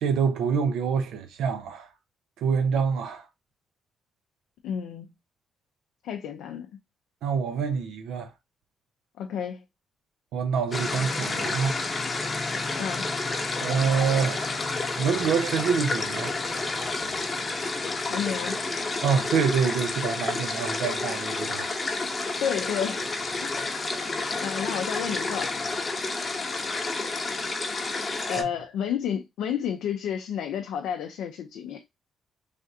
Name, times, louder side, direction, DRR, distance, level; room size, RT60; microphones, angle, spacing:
voice 1, 0.0-1.9 2.4-3.2 7.2-8.3 10.3-11.8 13.6-14.6 15.0-16.3 16.8-17.2 19.0-21.7 28.4-28.5, right 6 dB, 85° right, 0.5 m, -26 dB
voice 2, 4.6-5.1 6.0-6.7 9.2-9.6 12.8-13.1 17.9-18.6 22.4-23.5 24.4-25.5 28.3-31.8, left 8 dB, 85° left, 0.4 m, -31 dB
sound 1, 10.7-28.4, left 3 dB, 30° left, 0.7 m, -30 dB
3.3 x 2.5 x 2.7 m
cardioid pair, 90°, 0 cm